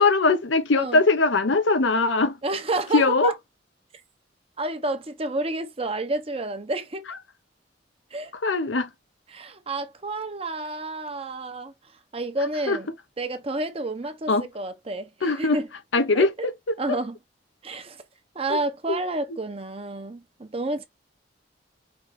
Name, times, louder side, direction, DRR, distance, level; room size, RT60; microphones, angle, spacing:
voice 1, 0.0-2.4 2.9-3.3 8.4-8.9 12.7-12.8 14.3-14.5 15.2-15.6 15.9-17.0 18.5-18.6 18.9-19.0, left 3 dB, 80° left, 0.8 m, -21 dB
voice 2, 2.4-3.3 4.6-7.0 8.1-8.3 9.3-11.7 12.1-12.9 13.2-15.7 16.1-16.3 16.8-17.2 17.6-18.0 18.3-20.9, right 2 dB, 30° right, 0.8 m, -30 dB
5.3 x 3.2 x 3.1 m
head